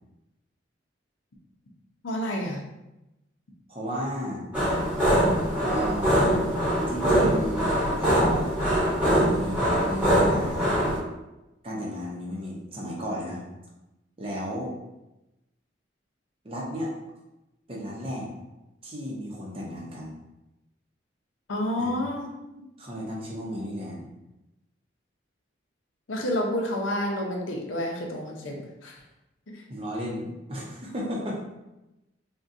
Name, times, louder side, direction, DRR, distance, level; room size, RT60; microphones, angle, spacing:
voice 1, 2.0-2.6 21.5-22.3 26.1-29.0 29.5-29.6, left 1 dB, 90° left, 0 dB, 0.6 m, -29 dB
voice 2, 3.7-4.4 5.6-6.4 6.9-8.6 9.2-10.7 11.6-13.4 14.2-14.7 16.4-16.9 17.7-18.3 18.8-20.1 21.8-22.0 22.4-22.5 22.8-24.1 29.7-31.4, equal, 30° right, -3 dB, 0.6 m, -34 dB
sound 1, 4.5-11.0, equal, 5° right, 0.9 m, -23 dB
3.7 x 2.2 x 2.5 m, 0.97 s
head